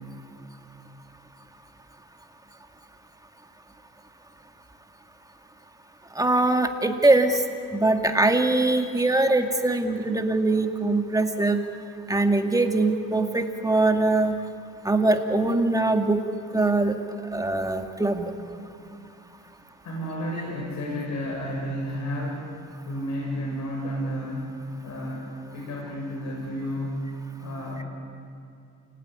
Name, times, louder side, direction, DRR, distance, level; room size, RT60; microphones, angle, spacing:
voice 1, 6.2-7.4 7.7-11.6 12.1-14.3 14.8-16.2 16.5-16.9 17.3-18.3, right 2 dB, 10° right, 4 dB, 2.3 m, -22 dB
voice 2, 19.8-22.5 22.8-24.6 24.8-27.1 27.4-27.8, equal, 70° left, -1 dB, 6.2 m, -31 dB
29.0 x 18.5 x 9.8 m, 2.5 s
cardioid pair, 90°, 30 cm